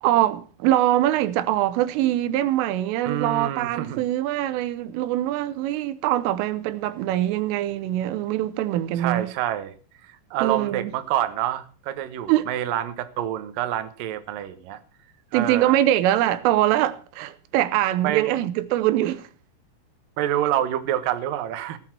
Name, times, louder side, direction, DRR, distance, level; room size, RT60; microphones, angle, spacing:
voice 1, 0.0-9.3 10.4-10.9 12.3-12.5 15.3-19.2, right 13 dB, 85° right, 3.4 m, -23 dB
voice 2, 3.1-4.0 9.0-9.7 10.0-14.8 15.3-15.8 18.0-18.3 20.2-21.8, right 11 dB, 65° right, 2.3 m, -27 dB
18.5 x 8.4 x 6.0 m
omnidirectional pair, 5.6 m